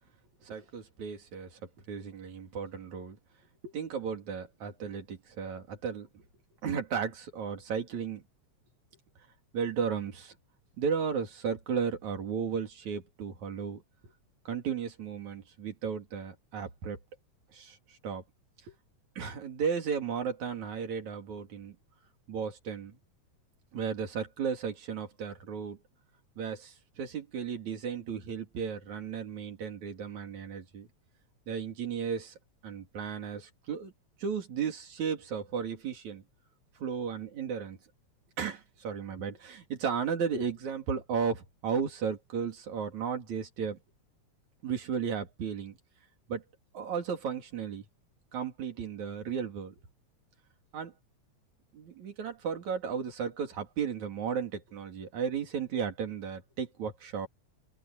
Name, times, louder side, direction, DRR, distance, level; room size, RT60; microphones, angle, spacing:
voice 1, 0.4-1.6 1.9-3.2 3.6-6.2 6.6-8.2 9.5-10.4 10.8-13.8 14.5-17.0 17.5-18.2 18.6-18.7 19.2-21.8 22.3-23.0 23.7-25.8 26.4-30.9 31.5-32.3 32.6-33.9 34.2-36.2 36.8-37.8 38.4-43.8 44.6-45.8 46.3-46.4 46.7-47.8 48.3-49.7 50.7-50.9 51.7-57.3, right 6 dB, 75° right, 4.2 m, -34 dB
open air
omnidirectional pair, 3.3 m